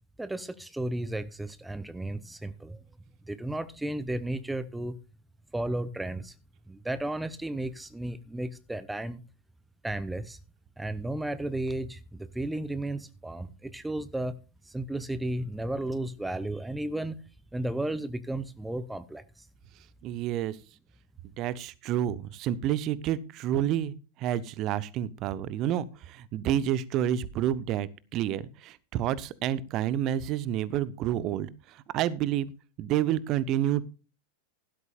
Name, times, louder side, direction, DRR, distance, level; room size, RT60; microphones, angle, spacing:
voice 1, 0.2-2.8 3.2-5.0 5.5-6.3 6.7-9.2 9.8-10.4 10.8-14.4 14.6-17.2 17.5-19.5, right 1 dB, 5° right, 0.7 m, -34 dB
voice 2, 20.0-20.6 21.4-32.5 32.8-33.8, right 11 dB, 35° right, 0.8 m, -29 dB
16.0 x 12.5 x 2.4 m
figure-of-eight pair, 90°, 0 cm